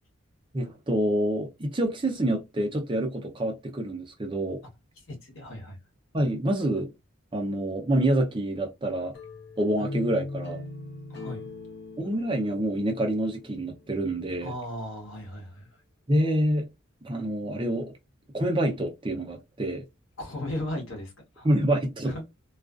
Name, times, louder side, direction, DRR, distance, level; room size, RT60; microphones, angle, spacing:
voice 1, 0.5-4.6 6.1-6.9 7.3-9.1 9.6-10.6 12.0-14.5 16.1-16.6 17.0-17.9 18.3-19.8 21.4-22.2, right 1 dB, 25° right, 0.5 m, -27 dB
voice 2, 5.0-5.8 11.1-11.5 14.4-15.7 20.2-21.5 22.0-22.2, left 1 dB, 70° left, 1.0 m, -36 dB
sound 1, 9.1-14.0, left 2 dB, 50° left, 0.7 m, -40 dB
2.4 x 2.3 x 2.3 m
head